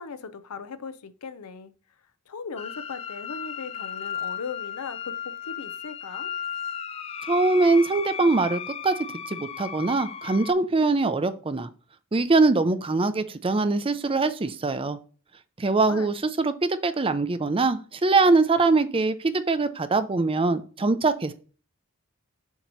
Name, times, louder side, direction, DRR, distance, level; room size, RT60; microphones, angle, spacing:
voice 1, 0.0-1.7 2.3-6.3 15.9-16.1, left 5 dB, 85° left, 0.6 m, -38 dB
sound 1, 2.6-10.5, left 8 dB, 25° left, 0.3 m, -35 dB
voice 2, 7.3-9.0 9.3-11.7 12.1-15.0 15.6-21.3, right 3 dB, 25° right, 0.5 m, -23 dB
7.2 x 3.0 x 5.3 m
head